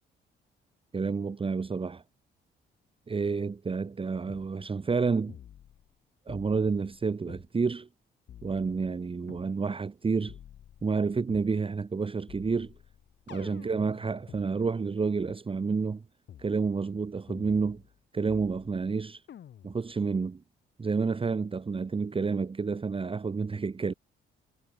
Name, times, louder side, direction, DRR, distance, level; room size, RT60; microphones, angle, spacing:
voice 1, 0.9-2.0 3.1-5.4 6.3-7.9 8.4-10.4 10.8-12.7 13.3-16.0 16.4-17.8 18.1-19.2 19.6-20.4 20.8-23.9, right 4 dB, 25° right, 1.2 m, -29 dB
sound 1, 4.3-4.5 5.3-6.0 6.3-7.5 8.3-9.5 10.3-11.5 12.3-14.4 15.3-15.4 16.3-16.5 17.3-18.0 18.3-18.9 19.3-19.9, left 10 dB, 65° left, 4.3 m, -50 dB
cardioid pair, 90°, 20 cm